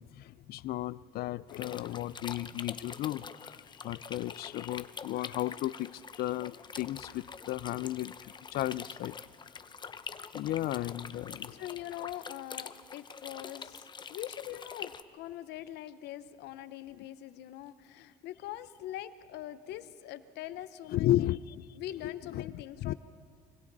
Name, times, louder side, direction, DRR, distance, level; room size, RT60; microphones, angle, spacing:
voice 1, 0.0-3.5 3.8-8.1 8.5-9.2 10.3-11.6 20.9-21.5 22.0-22.9, left 14 dB, 65° left, 0.5 m, -34 dB
sound 1, 1.5-15.0, left 5 dB, 25° left, 0.7 m, -45 dB
voice 2, 10.6-11.0 11.5-21.3 21.8-22.9, left 13 dB, 85° left, 0.8 m, -43 dB
26.0 x 25.0 x 4.0 m
cardioid pair, 110°, 17 cm